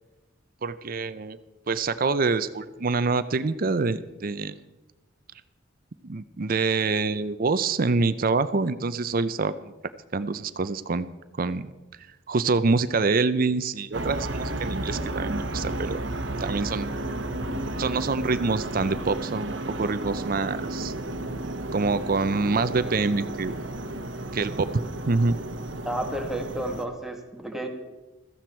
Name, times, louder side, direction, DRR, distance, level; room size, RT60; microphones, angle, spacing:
voice 1, 0.6-1.4 1.7-4.6 6.0-9.7 10.1-11.1 11.4-11.7 12.3-16.0 16.4-16.9 17.8-20.9 21.7-23.5 24.3-24.7 25.1-25.3, right 4 dB, 50° right, 13 dB, 0.6 m, -26 dB
sound 1, 13.9-26.8, right 1 dB, 80° right, 1.1 m, -33 dB
voice 2, 25.9-27.7, right 1 dB, ahead, 2 dB, 1.7 m, -31 dB
15.5 x 14.5 x 4.5 m, 1.1 s
head